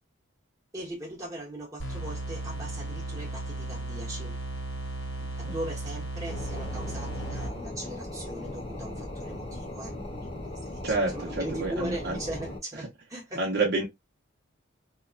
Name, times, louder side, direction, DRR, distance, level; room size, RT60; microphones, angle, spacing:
voice 1, 0.7-4.3 5.4-13.4, right 1 dB, 15° right, 1.1 m, -39 dB
sound 1, 1.8-7.8, right 2 dB, 80° left, 1.6 m, -35 dB
voice 2, 5.2-5.6 10.8-12.2 13.4-13.8, right 3 dB, 50° right, 0.7 m, -29 dB
sound 2, 6.3-12.6, left 1 dB, 30° left, 0.9 m, -38 dB
2.9 x 2.1 x 2.4 m
head